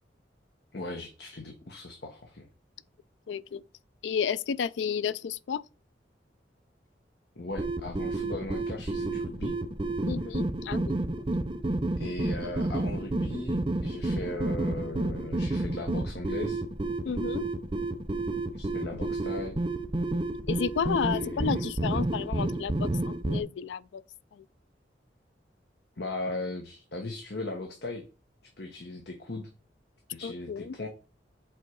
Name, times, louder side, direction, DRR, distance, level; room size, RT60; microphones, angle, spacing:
voice 1, 0.7-2.5 7.3-9.5 12.0-16.6 18.5-19.6 21.1-21.6 26.0-28.0 28.6-29.5 30.1-30.9, left 2 dB, 65° left, 1.1 m, -38 dB
voice 2, 3.3-3.6 4.0-5.6 10.1-10.9 17.0-17.5 20.5-24.0 24.4-24.5 30.2-30.8, left 6 dB, 85° left, 0.4 m, -32 dB
sound 1, 7.5-23.4, right 2 dB, 30° right, 0.6 m, -30 dB
7.7 x 3.7 x 4.6 m
head